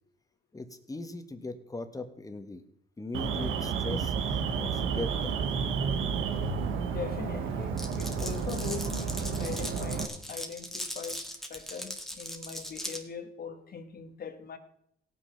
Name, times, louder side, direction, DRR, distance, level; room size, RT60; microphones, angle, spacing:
voice 1, 0.5-2.6 3.0-5.4, left 2 dB, 15° left, 8 dB, 1.4 m, -39 dB
Alarm, 3.1-10.1, right 6 dB, 85° right, 1.2 m, -31 dB
voice 2, 6.8-11.2 11.5-14.6, left 6 dB, 50° left, 8 dB, 1.4 m, -41 dB
Glass, 7.8-13.0, equal, ahead, 1.7 m, -39 dB
17.0 x 6.1 x 5.7 m, 0.72 s
cardioid pair, 90°, 20 cm